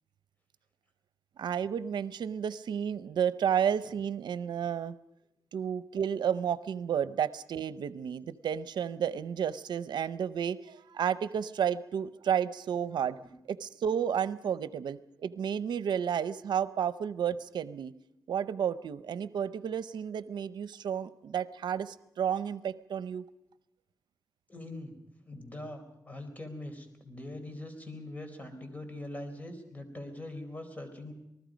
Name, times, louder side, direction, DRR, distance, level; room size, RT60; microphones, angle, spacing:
voice 1, 1.4-5.0 5.5-13.2 13.5-17.9 18.3-23.2, right 8 dB, 85° right, 15 dB, 0.7 m, -32 dB
voice 2, 13.0-13.3 24.5-25.0 25.2-31.1, left 1 dB, 20° left, 7 dB, 4.3 m, -42 dB
27.5 x 19.5 x 5.2 m, 0.85 s
cardioid pair, 90°, 7 cm